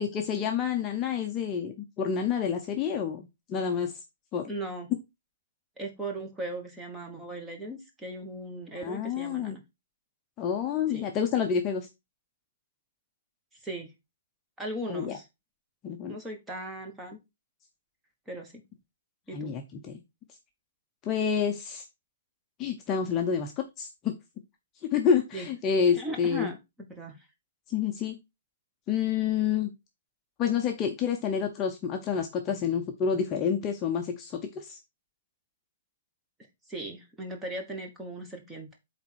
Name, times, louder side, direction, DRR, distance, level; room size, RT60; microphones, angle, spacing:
voice 1, 0.0-3.9 4.3-4.5 8.8-9.6 10.4-11.9 14.8-15.2 15.8-16.1 19.3-20.0 21.0-21.9 22.6-23.5 23.8-24.1 24.9-26.5 27.7-28.2 28.9-29.7 30.4-34.8, left 7 dB, 20° left, 3 dB, 0.7 m, -28 dB
voice 2, 4.5-4.9 5.8-9.6 10.9-11.1 13.6-13.9 14.6-15.2 16.1-17.2 18.3-18.6 19.3-19.6 25.3-25.5 25.9-26.6 26.9-27.3 36.7-38.8, right 1 dB, 5° right, 2 dB, 1.4 m, -38 dB
8.3 x 3.6 x 4.5 m, 0.22 s
hypercardioid pair, 165°, 0 cm